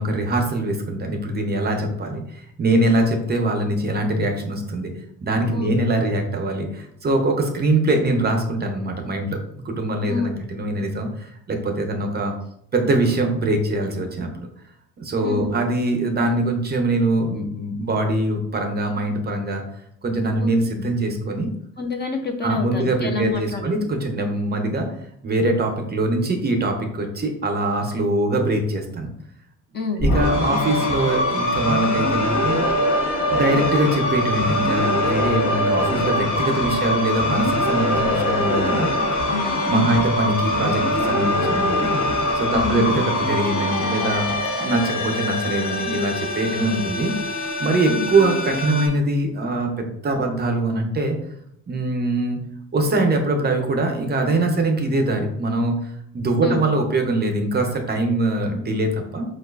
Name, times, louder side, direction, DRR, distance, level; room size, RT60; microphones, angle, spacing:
voice 1, 0.0-4.9 5.2-9.4 9.6-12.3 12.7-14.5 15.0-19.6 20.0-21.5 22.4-24.9 25.2-29.1 30.0-32.6 33.2-38.9 39.7-41.9 42.3-47.1 47.6-51.2 51.7-52.4 52.7-59.3, right 2 dB, 30° right, 3 dB, 0.5 m, -23 dB
voice 2, 10.1-10.4 15.2-15.5 20.4-20.5 21.8-23.8 29.7-30.0 36.7-36.8 39.3-40.0 42.5-42.9 46.6-46.8 47.9-48.1 56.4-56.6, left 4 dB, 35° left, 4 dB, 0.5 m, -28 dB
sound 1, 30.0-48.9, left 1 dB, 70° left, 0.8 m, -23 dB
4.6 x 2.2 x 2.3 m, 0.73 s
cardioid pair, 105°, 32 cm